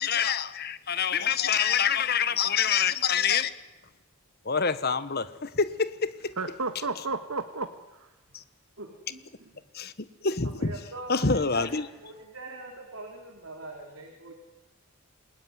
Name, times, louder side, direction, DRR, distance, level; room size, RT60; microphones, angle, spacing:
voice 1, 0.0-3.5 4.5-6.1 9.7-9.9 10.2-10.7 11.1-11.8, left 6 dB, 45° left, 1.3 m, -26 dB
voice 2, 6.4-8.1, right 3 dB, 80° right, 1.7 m, -32 dB
voice 3, 8.8-9.5 10.4-14.3, right 2 dB, 65° right, 4.6 m, -43 dB
28.0 x 20.5 x 9.4 m
head